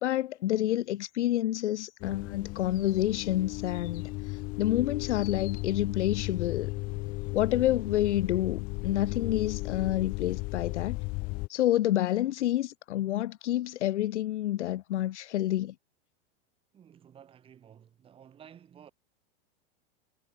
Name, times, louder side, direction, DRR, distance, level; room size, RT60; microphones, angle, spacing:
voice 1, 0.0-4.1 4.6-6.7 7.3-11.0 11.5-15.7, left 13 dB, 80° left, 1.3 m, -28 dB
sound 1, 2.0-11.5, left 24 dB, 25° left, 0.9 m, -35 dB
voice 2, 16.7-18.9, right 9 dB, 15° right, 7.8 m, -54 dB
supercardioid pair, 175°, 34 cm